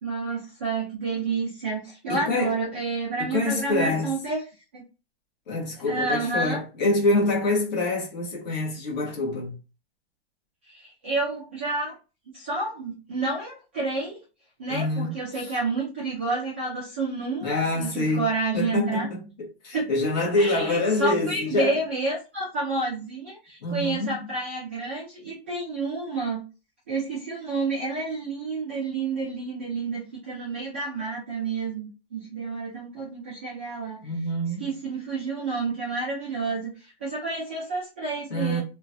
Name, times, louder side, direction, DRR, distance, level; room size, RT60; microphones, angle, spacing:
voice 1, 0.0-4.4 4.7-4.8 5.9-6.6 10.7-12.0 12.3-14.2 14.6-19.1 19.7-19.8 20.4-26.4 26.9-34.1 34.6-38.6, right 3 dB, 15° right, 0.3 m, -29 dB
voice 2, 2.1-2.6 3.2-4.1 5.5-9.6 14.7-15.5 17.4-18.3 18.5-21.8 23.6-24.2 34.0-34.7 38.3-38.6, left 2 dB, 45° left, 1.4 m, -26 dB
3.0 x 2.2 x 2.6 m
hypercardioid pair, 165°, 31 cm